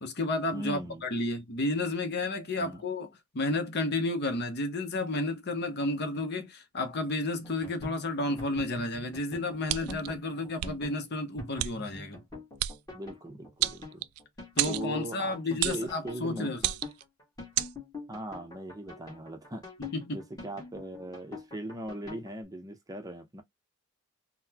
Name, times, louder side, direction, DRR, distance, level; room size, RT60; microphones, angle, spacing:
voice 1, 0.0-3.1 3.3-12.2 14.6-16.6 19.8-20.2, left 2 dB, 50° left, 0.7 m, -32 dB
voice 2, 0.5-1.0 2.6-2.8 12.9-14.0 14.7-16.6 18.1-19.6 20.1-23.4, right 1 dB, 15° right, 0.6 m, -39 dB
sound 1, 7.4-22.3, left 3 dB, 15° left, 1.3 m, -44 dB
sound 2, 9.7-10.1 10.6-10.7 11.6-11.7 12.6-12.8 13.6-14.2 14.6-14.9 15.6-15.9 16.6-17.0 17.6-17.7, right 15 dB, 85° right, 0.3 m, -30 dB
3.9 x 2.1 x 2.8 m
head